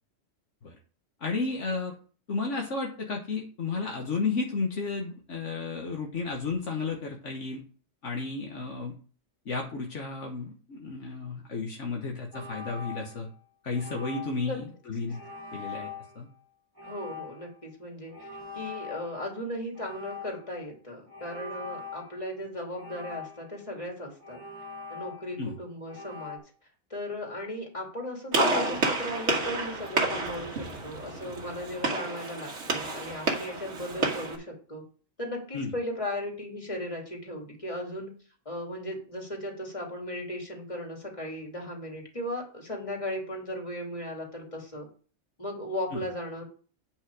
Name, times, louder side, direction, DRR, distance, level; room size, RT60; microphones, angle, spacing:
voice 1, 1.2-2.0 2.3-7.6 8.0-8.9 9.4-13.3 13.6-15.2 15.5-16.3 25.4-25.5 35.5-35.7 45.9-46.0, left 4 dB, 70° left, 1 dB, 1.5 m, -33 dB
sound 1, 12.3-13.4 13.7-14.5 15.1-16.2 16.8-17.6 18.1-19.4 19.7-20.5 21.1-22.2 22.8-23.7 24.2-25.5 25.9-26.4, left 4 dB, 20° right, 1.4 m, -42 dB
voice 2, 16.8-18.3 18.5-24.4 24.9-26.4 26.9-34.8 35.2-38.1 38.4-44.9 45.4-46.4, left 1 dB, 25° left, 0 dB, 2.8 m, -36 dB
Gunshot gunfire, 28.3-34.4, right 2 dB, 65° right, 2.0 m, -30 dB
8.9 x 5.5 x 4.8 m, 0.40 s
omnidirectional pair, 1.3 m